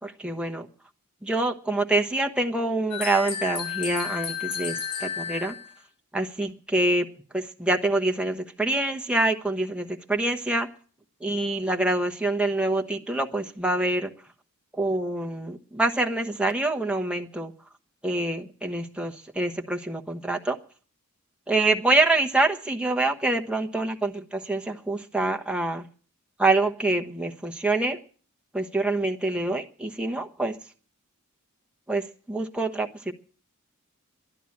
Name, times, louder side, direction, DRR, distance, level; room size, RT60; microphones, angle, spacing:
voice 1, 0.0-0.7 1.2-5.5 6.1-7.1 7.3-10.7 11.2-14.1 14.8-17.5 18.0-20.6 21.5-25.8 26.4-28.0 28.5-30.5 31.9-33.1, right 2 dB, 5° right, 2 dB, 1.0 m, -26 dB
sound 1, 2.9-5.7, left 7 dB, 80° left, 2.1 m, -32 dB
12.0 x 11.0 x 8.5 m, 0.43 s
head